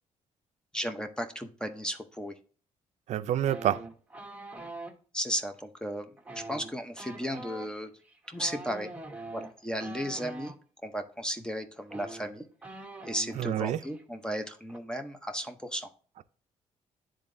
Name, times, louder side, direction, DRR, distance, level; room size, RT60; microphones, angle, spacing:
voice 1, 0.7-2.3 5.1-7.9 8.3-8.9 9.3-10.5 10.8-12.4 13.1-15.9, equal, 5° left, 0.6 m, -35 dB
voice 2, 3.1-3.8 13.4-13.8, right 11 dB, 65° right, 0.4 m, -27 dB
sound 1, 3.5-4.9 6.2-10.5 11.5-11.6 11.8-13.5 13.8-14.0 14.3-14.8, right 2 dB, 10° right, 1.1 m, -44 dB
10.0 x 3.8 x 2.6 m
cardioid pair, 100°, 13 cm